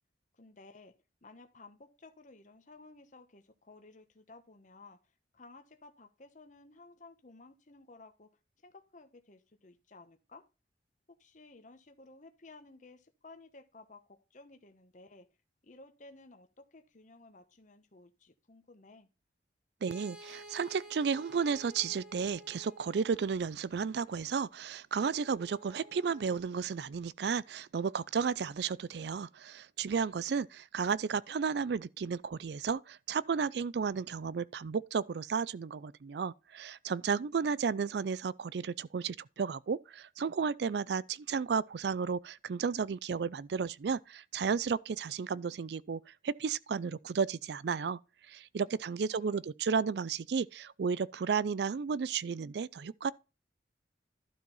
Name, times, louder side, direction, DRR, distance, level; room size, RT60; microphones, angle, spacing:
voice 1, 0.3-0.9 1.2-5.0 5.3-8.3 8.6-10.4 11.2-15.3 15.6-19.1 37.0-37.6 49.0-49.5, left 3 dB, 45° left, 1.0 m, -56 dB
voice 2, 19.8-48.0 48.3-53.1, right 6 dB, 65° right, 0.4 m, -33 dB
sound 1, 19.9-23.4 25.0-26.4, right 2 dB, 5° right, 1.5 m, -52 dB
12.0 x 4.4 x 5.5 m
head